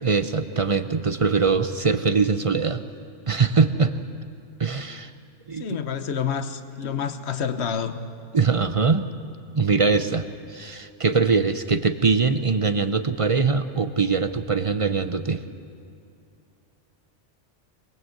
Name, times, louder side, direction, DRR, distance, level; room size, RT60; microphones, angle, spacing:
voice 1, 0.0-2.8 3.3-3.9 4.6-5.1 5.5-5.8 8.3-9.0 9.5-15.4, right 4 dB, 35° right, 10 dB, 0.7 m, -22 dB
voice 2, 5.6-8.0, left 7 dB, 65° left, 10 dB, 1.3 m, -28 dB
22.5 x 21.5 x 7.9 m, 2.5 s
omnidirectional pair, 1.2 m